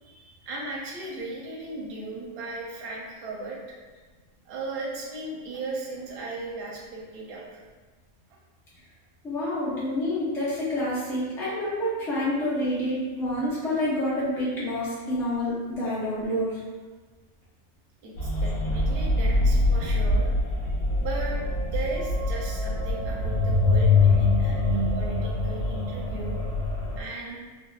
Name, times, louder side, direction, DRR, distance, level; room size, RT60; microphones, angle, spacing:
voice 1, 0.0-3.6 4.5-7.6 18.0-20.4 21.0-26.3 27.0-27.4, right 2 dB, 60° right, -2 dB, 0.7 m, -36 dB
voice 2, 9.2-16.6, left 1 dB, 5° left, -10 dB, 0.5 m, -28 dB
sound 1, 18.2-27.0, left 2 dB, 80° left, 1.2 m, -24 dB
3.4 x 2.0 x 2.3 m, 1.3 s
omnidirectional pair, 1.3 m